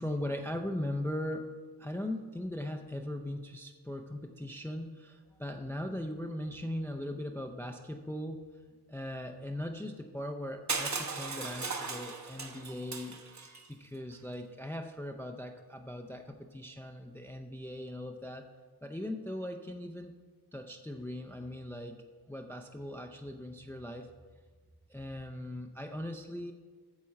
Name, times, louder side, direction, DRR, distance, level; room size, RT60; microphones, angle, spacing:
voice 1, 0.0-8.5 8.9-18.5 18.8-20.2 20.5-24.1 24.9-26.5, left 1 dB, 5° left, 5 dB, 0.4 m, -39 dB
Crushing, 10.7-13.6, right 4 dB, 45° right, 1.0 m, -37 dB
12.0 x 4.2 x 7.6 m, 1.5 s
wide cardioid pair, 135°, 41 cm